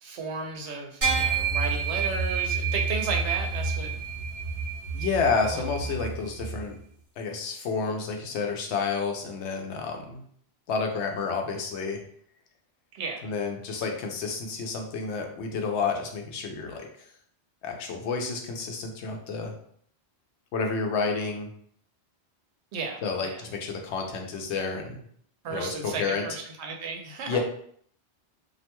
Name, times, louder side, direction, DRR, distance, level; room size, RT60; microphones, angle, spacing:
voice 1, 0.0-3.9 5.5-5.6 12.9-13.3 22.7-23.4 25.4-27.4, right 4 dB, 80° right, 3 dB, 0.9 m, -34 dB
sound 1, 1.0-6.6, right 5 dB, 35° right, 1.1 m, -29 dB
voice 2, 4.9-6.8 7.2-10.2 10.7-12.0 13.2-17.1 17.6-19.5 20.5-21.5 23.0-25.0 25.5-26.2 27.3-27.4, left 4 dB, 90° left, 3 dB, 0.9 m, -30 dB
2.5 x 2.2 x 2.8 m, 0.63 s
omnidirectional pair, 1.1 m